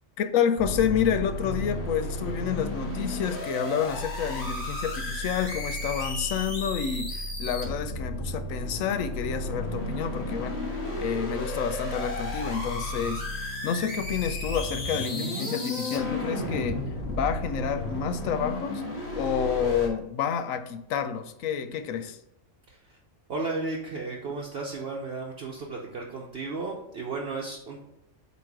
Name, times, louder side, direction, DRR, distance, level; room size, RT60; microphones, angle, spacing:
voice 1, 0.2-10.7 11.0-16.8 17.1-18.8 19.1-22.2, left 8 dB, 80° left, 10 dB, 1.0 m, -29 dB
sound 1, 0.6-19.9, left 1 dB, 50° left, 2.0 m, -33 dB
voice 2, 23.3-27.8, right 3 dB, 55° right, -1 dB, 1.0 m, -34 dB
8.2 x 3.1 x 4.6 m, 0.82 s
omnidirectional pair, 1.4 m